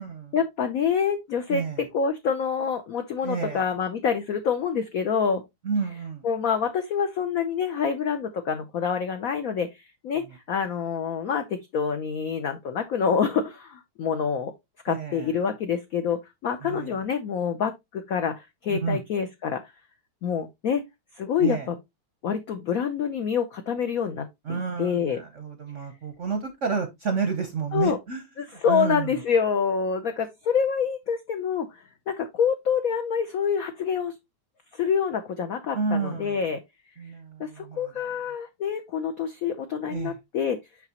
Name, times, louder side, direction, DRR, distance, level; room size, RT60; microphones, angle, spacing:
voice 1, 0.3-5.4 6.2-14.5 14.8-19.7 20.2-20.8 21.1-21.8 22.2-25.2 27.7-28.0 28.4-34.1 34.7-36.6 37.4-40.6, left 6 dB, 85° left, 0.7 m, -27 dB
voice 2, 1.5-1.9 3.2-3.6 5.6-6.3 14.9-15.3 16.6-17.0 18.7-19.0 21.4-21.7 24.4-28.2 28.7-29.1 35.7-36.4 37.0-37.9 39.9-40.1, right 5 dB, 60° right, 0.8 m, -30 dB
5.9 x 5.8 x 2.8 m
omnidirectional pair, 2.3 m